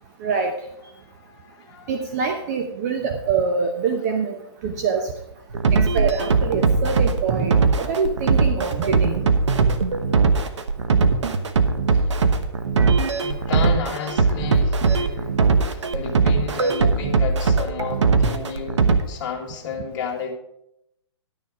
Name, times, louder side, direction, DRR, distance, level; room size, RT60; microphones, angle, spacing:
voice 1, 0.2-0.5 1.9-4.3 4.6-5.1 5.7-9.2, right 5 dB, 35° right, 5 dB, 0.9 m, -24 dB
voice 2, 1.0-1.9 11.9-12.1 13.1-20.3, left 6 dB, 45° left, -1 dB, 2.0 m, -32 dB
sound 1, 5.5-19.0, right 4 dB, 80° right, 1.1 m, -20 dB
11.0 x 6.8 x 4.9 m, 0.81 s
hypercardioid pair, 150°, 15 cm